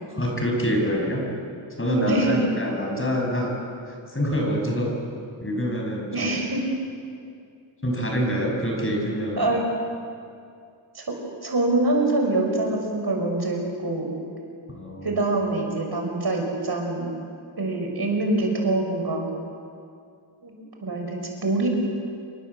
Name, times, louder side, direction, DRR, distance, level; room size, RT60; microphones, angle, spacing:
voice 1, 0.1-1.2 1.8-3.6 4.1-5.0 5.4-6.4 7.8-9.5 14.7-15.1, equal, 25° left, 0 dB, 6.4 m, -26 dB
voice 2, 2.0-2.4 6.1-6.6 9.4-9.6 10.9-11.0 11.4-14.2 15.0-17.1 17.6-19.3 20.4-21.7, right 2 dB, 50° right, 1 dB, 5.8 m, -25 dB
28.0 x 23.5 x 8.0 m, 2.4 s
wide cardioid pair, 95°, 47 cm